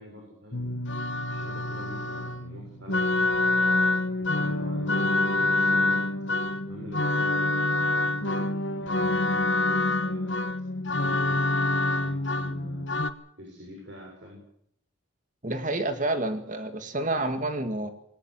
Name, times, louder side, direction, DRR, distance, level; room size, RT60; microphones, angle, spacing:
voice 1, 0.0-6.1 6.7-8.5 8.8-10.4 10.9-13.1 13.4-14.4, equal, 60° right, 0 dB, 6.8 m, -45 dB
sound 1, 0.5-13.1, left 2 dB, 65° left, 1.2 m, -26 dB
voice 2, 15.4-17.9, right 2 dB, 35° right, 8 dB, 2.2 m, -29 dB
21.0 x 18.5 x 8.1 m, 0.71 s
head